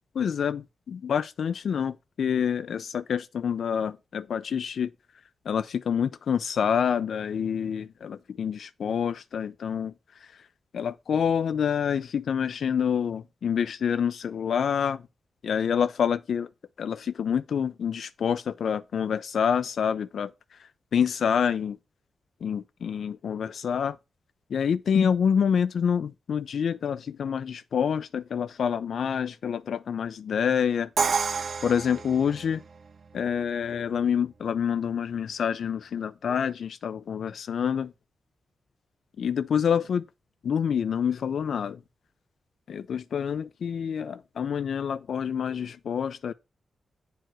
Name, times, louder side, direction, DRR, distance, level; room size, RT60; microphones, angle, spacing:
voice 1, 0.1-4.9 5.5-9.9 10.2-10.3 10.7-15.0 15.4-16.5 16.8-21.8 22.4-24.0 24.5-30.9 31.4-32.6 33.1-37.9 39.2-40.0 40.4-41.8 42.7-46.3, left 7 dB, 70° left, 0.4 m, -27 dB
Crash cymbal, 31.0-32.9, right 5 dB, 50° right, 0.5 m, -29 dB
9.1 x 4.7 x 6.1 m
wide cardioid pair, 120°, 0 cm